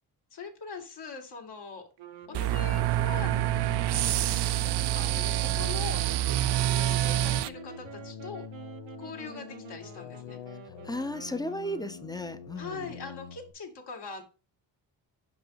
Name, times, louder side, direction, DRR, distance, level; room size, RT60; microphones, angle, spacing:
voice 1, 0.3-1.9 2.3-3.8 4.9-6.0 6.8-8.5 9.0-10.4 12.6-14.2, left 4 dB, 60° left, 2.0 m, -42 dB
sound 1, 2.0-12.4, right 12 dB, 85° right, 0.9 m, -48 dB
sound 2, 2.2-13.5, left 8 dB, 85° left, 0.8 m, -45 dB
sound 3, 2.3-7.5, right 13 dB, 65° right, 0.5 m, -27 dB
voice 2, 10.8-13.0, left 1 dB, 10° left, 0.6 m, -35 dB
5.4 x 5.3 x 4.6 m
cardioid pair, 90°, 45 cm